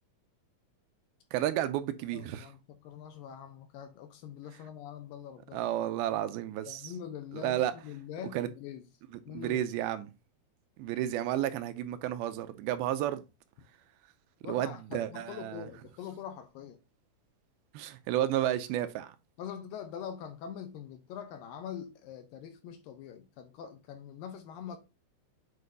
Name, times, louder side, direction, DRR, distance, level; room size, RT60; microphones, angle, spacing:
voice 1, 1.3-2.5 5.5-6.9 7.3-7.7 8.3-8.5 9.3-10.1 10.8-13.2 14.5-15.7 17.7-19.1, right 12 dB, 80° right, 2.4 m, -32 dB
voice 2, 2.1-5.7 6.7-8.8 9.3-9.6 14.4-16.8 19.4-24.8, left 8 dB, 80° left, 2.2 m, -44 dB
8.3 x 4.3 x 2.6 m
omnidirectional pair, 4.4 m